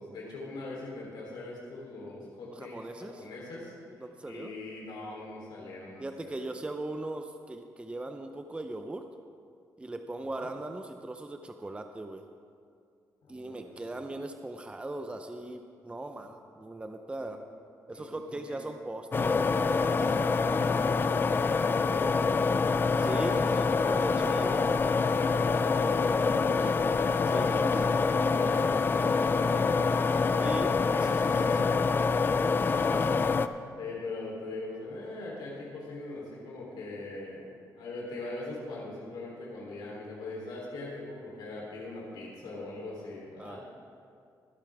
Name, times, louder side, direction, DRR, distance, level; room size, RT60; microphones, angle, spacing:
voice 1, 0.0-3.7 4.2-6.4 10.4-10.5 13.2-14.0 17.2-17.3 17.9-18.1 18.5-18.6 20.4-22.8 27.6-29.8 30.9-31.7 32.6-33.2 33.8-43.6, left 2 dB, 90° left, -4 dB, 3.3 m, -42 dB
voice 2, 2.5-3.3 4.0-4.5 6.0-9.0 9.8-12.2 13.3-17.4 17.9-20.2 22.9-24.6 26.1-26.7 27.3-28.0 30.4-31.7 43.4-43.6, right 2 dB, 15° right, 6 dB, 0.6 m, -39 dB
sound 1, 19.1-33.5, left 4 dB, 30° left, 0.4 m, -26 dB
22.0 x 8.3 x 3.5 m, 2.3 s
cardioid pair, 100°, 7 cm